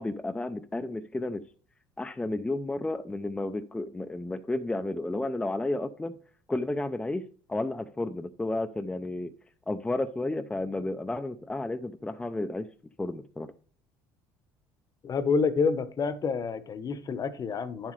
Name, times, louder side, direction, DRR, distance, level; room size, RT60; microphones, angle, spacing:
voice 1, 0.0-1.4 2.0-6.2 6.5-7.2 7.5-9.3 9.7-12.7 13.0-13.5, left 2 dB, 10° left, 7 dB, 0.5 m, -32 dB
voice 2, 15.0-17.9, left 5 dB, 40° left, 13 dB, 0.9 m, -28 dB
9.4 x 7.4 x 3.2 m, 0.41 s
supercardioid pair, 90°, 10 cm